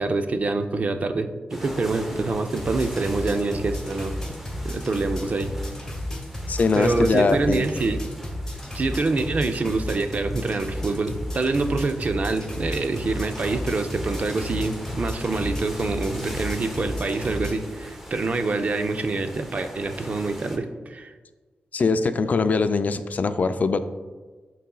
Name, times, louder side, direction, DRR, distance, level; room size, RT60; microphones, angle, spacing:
voice 1, 0.0-4.2 4.6-5.5 6.8-8.0 8.7-21.1, right 3 dB, 45° right, 7 dB, 0.4 m, -26 dB
sound 1, 1.5-20.6, equal, 10° right, 0.8 m, -40 dB
sound 2, 2.5-17.5, left 1 dB, 15° left, 1.5 m, -33 dB
voice 2, 6.5-7.6 21.7-23.8, left 4 dB, 50° left, 10 dB, 0.3 m, -22 dB
11.0 x 4.1 x 2.3 m, 1.4 s
wide cardioid pair, 110°, 3 cm